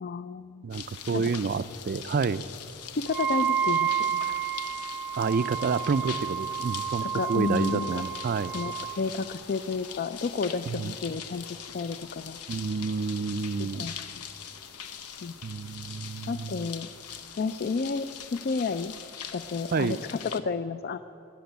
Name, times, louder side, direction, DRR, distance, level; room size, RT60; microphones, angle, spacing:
voice 1, 0.0-0.6 1.1-1.2 3.0-4.2 7.0-8.0 8.5-12.4 13.6-14.1 15.2-15.3 16.3-16.9 17.4-18.1 18.3-18.9 19.3-21.0, left 4 dB, 45° left, 12 dB, 0.3 m, -31 dB
voice 2, 0.6-2.5 5.2-8.5 10.7-11.0 12.5-13.9 15.4-16.7 19.7-20.0, right 5 dB, 40° right, 15 dB, 0.4 m, -29 dB
sound 1, 0.7-20.4, left 8 dB, 85° left, 1.0 m, -42 dB
Wind instrument woodwind instrument, 3.1-9.0, right 8 dB, 5° right, 0.7 m, -30 dB
19.0 x 8.1 x 9.3 m, 3.0 s
head